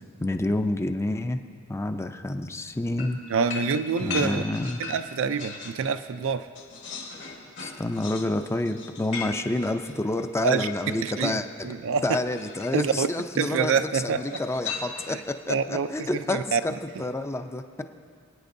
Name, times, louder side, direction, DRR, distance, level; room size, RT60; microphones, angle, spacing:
voice 1, 0.2-1.4 1.7-3.2 4.0-4.8 7.6-11.7 12.0-17.8, left 2 dB, 15° left, 7 dB, 0.4 m, -29 dB
sound 1, 3.0-5.9 6.2-11.3 12.3-12.9 14.2-15.3, left 5 dB, 60° left, 1.4 m, -38 dB
voice 2, 3.3-4.4 4.8-6.4 10.4-10.7 11.0-12.2 12.7-13.1 13.4-14.4 15.1-15.2 15.5-16.6, right 6 dB, 65° right, 11 dB, 0.4 m, -26 dB
27.5 x 9.2 x 2.6 m, 2.1 s
head